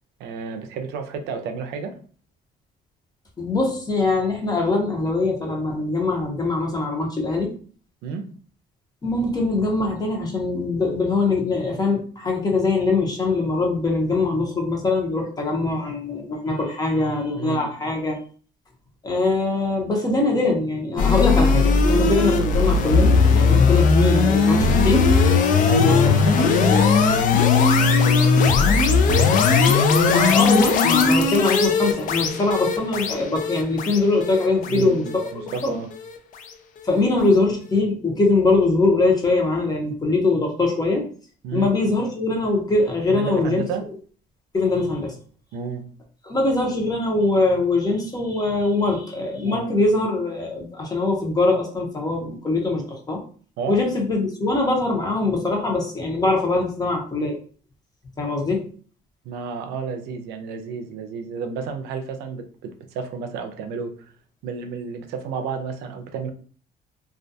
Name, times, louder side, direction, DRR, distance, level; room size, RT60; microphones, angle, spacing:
voice 1, 0.2-2.0 8.0-8.3 17.4-17.7 25.6-28.9 34.7-35.9 41.4-41.7 43.1-43.9 45.5-45.9 49.4-49.7 53.6-53.8 59.2-64.1 64.4-66.3, right 5 dB, 90° right, 6 dB, 0.4 m, -31 dB
voice 2, 3.4-7.5 9.0-18.2 19.0-25.0 25.7-26.1 26.7-26.8 29.9-35.7 36.8-41.0 41.5-43.6 44.5-45.2 46.2-53.2 53.7-57.4 58.2-58.6, left 3 dB, 25° left, 1 dB, 0.7 m, -22 dB
sound 1, 21.0-36.1, left 4 dB, 50° left, 0.4 m, -18 dB
2.3 x 2.2 x 2.6 m, 0.43 s
cardioid pair, 110°, 17 cm